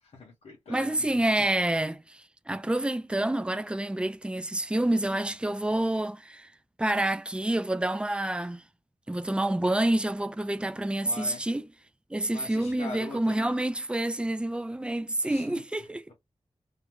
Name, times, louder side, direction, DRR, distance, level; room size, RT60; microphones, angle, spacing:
voice 1, 0.0-1.4 11.0-11.5 12.3-13.6 15.2-15.6, left 3 dB, 85° left, 0.7 m, -42 dB
voice 2, 0.7-6.5 6.8-8.6 9.1-11.7 12.1-16.1, right 1 dB, 10° right, 0.3 m, -28 dB
2.4 x 2.1 x 3.0 m
cardioid pair, 50°, 11 cm